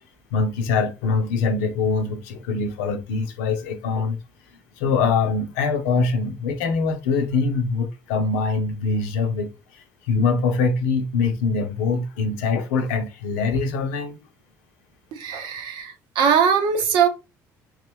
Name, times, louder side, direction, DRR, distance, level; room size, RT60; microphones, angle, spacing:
voice 1, 0.3-4.2 4.8-14.2, left 4 dB, 85° left, 0.7 m, -23 dB
voice 2, 15.1-17.1, right 7 dB, 75° right, 0.9 m, -21 dB
3.6 x 3.1 x 3.4 m
supercardioid pair, 70°, 8 cm